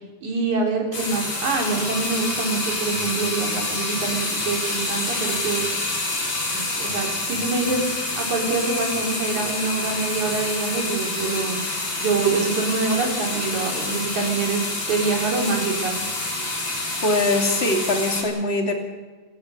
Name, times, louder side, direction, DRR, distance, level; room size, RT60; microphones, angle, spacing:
voice 1, 0.2-5.7 6.5-7.8 8.2-11.6 12.0-14.6 14.9-16.1, right 4 dB, 75° right, 0 dB, 5.1 m, -25 dB
sound 1, 0.9-18.2, left 2 dB, 40° left, 4.8 m, -27 dB
voice 2, 17.0-18.7, left 2 dB, 20° left, 2 dB, 2.8 m, -22 dB
28.5 x 15.5 x 6.5 m, 1.3 s
omnidirectional pair, 3.4 m